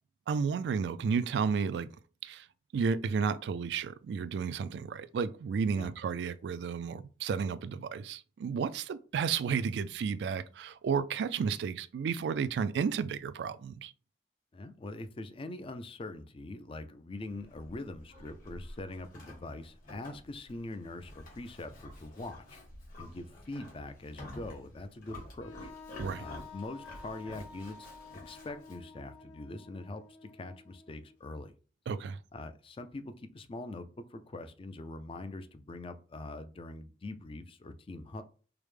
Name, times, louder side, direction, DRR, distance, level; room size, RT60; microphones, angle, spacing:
voice 1, 0.3-1.9 2.2-2.5 2.7-13.9 26.0-26.2 31.9-32.2, right 6 dB, 70° right, 0.3 m, -32 dB
voice 2, 14.5-22.6 23.0-25.7 26.2-27.8 28.2-31.5 32.3-38.2, left 2 dB, 30° left, 0.4 m, -43 dB
Livestock farm animals working animals, 17.2-28.8, left 1 dB, 50° left, 1.6 m, -50 dB
Wind instrument woodwind instrument, 25.4-31.2, left 4 dB, 85° left, 0.9 m, -51 dB
4.8 x 2.1 x 3.2 m
head